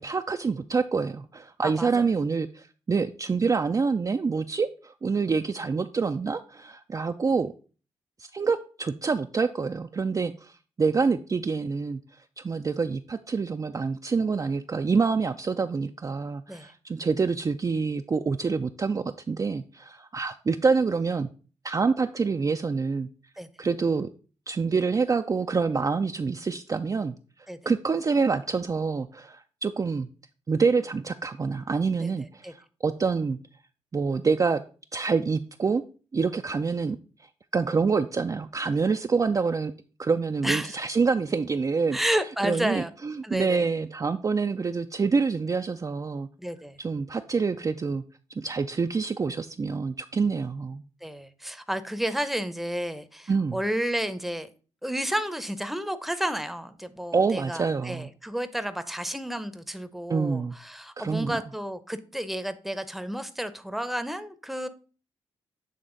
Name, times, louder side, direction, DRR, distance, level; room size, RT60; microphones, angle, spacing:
voice 1, 0.0-7.5 8.2-12.0 12.4-21.3 21.6-23.1 23.6-24.1 24.5-27.1 27.7-30.1 30.5-33.4 33.9-34.6 34.9-35.8 36.1-37.0 37.5-39.7 40.0-42.0 42.4-46.3 46.8-48.0 48.4-50.8 53.3-53.6 57.1-58.1 60.1-60.6 61.0-61.4, right 4 dB, 30° right, 7 dB, 0.4 m, -26 dB
voice 2, 1.6-2.0 16.5-16.7 23.4-23.5 27.5-27.6 32.0-32.1 32.4-32.5 40.4-40.8 41.9-42.9 43.2-43.6 46.4-46.8 51.0-54.5 54.8-64.7, equal, ahead, 11 dB, 0.7 m, -31 dB
8.0 x 3.3 x 3.8 m, 0.38 s
supercardioid pair, 45°, 11 cm